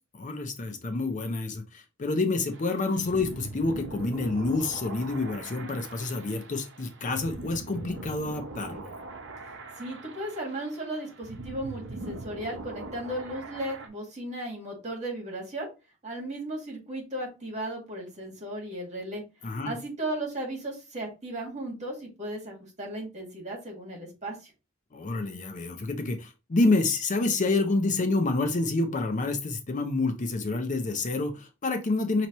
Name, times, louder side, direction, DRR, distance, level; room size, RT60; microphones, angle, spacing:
voice 1, 0.2-8.9 19.4-19.7 24.9-32.3, left 3 dB, 35° left, 6 dB, 0.6 m, -28 dB
sound 1, 2.5-13.9, right 2 dB, 60° right, 0.9 m, -42 dB
voice 2, 9.8-15.7 16.0-19.2 19.6-24.5, right 1 dB, 35° right, 1 dB, 1.9 m, -35 dB
5.5 x 3.0 x 3.0 m, 0.28 s
head